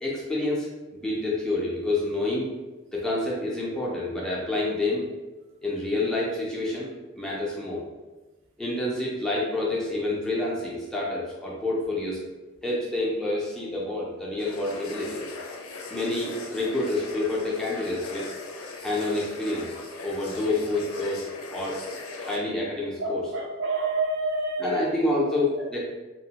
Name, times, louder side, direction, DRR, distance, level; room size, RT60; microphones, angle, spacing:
voice 1, 0.0-2.5 2.9-5.0 5.6-6.9 7.2-7.8 8.6-12.2 12.6-15.2 15.9-18.3 18.8-19.7 20.0-21.3 21.5-21.8 22.2-23.3 24.6-25.8, left 2 dB, 5° left, -6 dB, 0.4 m, -28 dB
sound 1, 14.4-22.4, left 3 dB, 90° left, 0.4 m, -39 dB
voice 2, 23.0-24.8 25.2-25.8, right 2 dB, 60° right, -1 dB, 0.6 m, -29 dB
2.8 x 2.0 x 2.8 m, 1.2 s
head